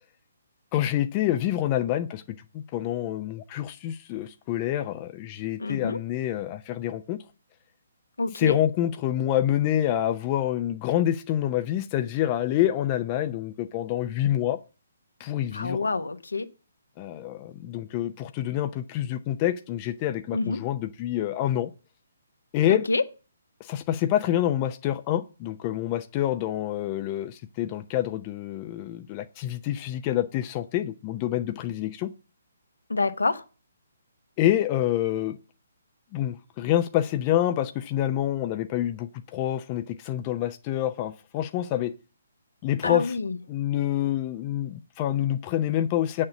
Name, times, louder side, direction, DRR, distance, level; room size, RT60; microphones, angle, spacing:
voice 1, 0.7-2.2 2.5-7.2 8.4-14.6 15.2-15.8 17.0-21.7 22.5-22.8 23.6-32.1 34.4-35.4 36.1-41.9 42.6-43.2 43.5-46.3, left 12 dB, 25° left, 0.6 m, -27 dB
voice 2, 5.6-6.0 8.2-8.6 15.5-16.5 20.3-20.6 22.7-23.0 32.9-33.4 42.8-43.4, left 3 dB, 75° left, 1.1 m, -27 dB
8.7 x 6.5 x 7.1 m
figure-of-eight pair, 135°, 0 cm